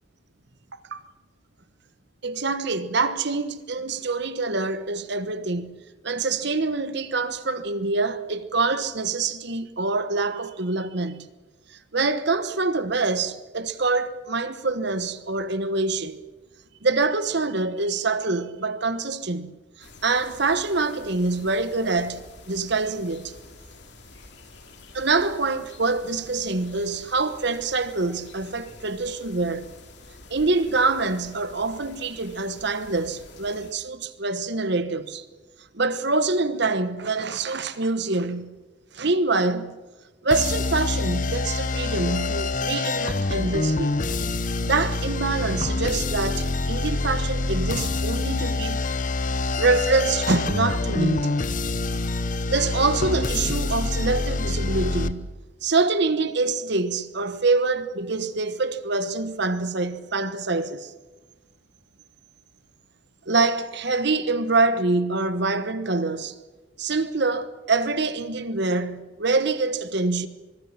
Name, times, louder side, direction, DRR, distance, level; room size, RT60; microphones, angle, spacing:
voice 1, 2.2-11.3 11.7-16.2 16.8-23.3 24.9-29.7 30.3-35.2 35.7-38.6 38.9-39.8 40.2-44.0 44.6-49.0 49.6-51.3 52.5-55.3 55.6-60.9 63.3-66.4 66.8-70.3, right 3 dB, 60° right, 1.2 m, -25 dB
sound 1, 19.8-33.7, left 3 dB, 60° left, 2.8 m, -48 dB
sound 2, 40.3-55.1, left 3 dB, 40° left, 0.8 m, -26 dB
24.0 x 23.0 x 5.9 m
head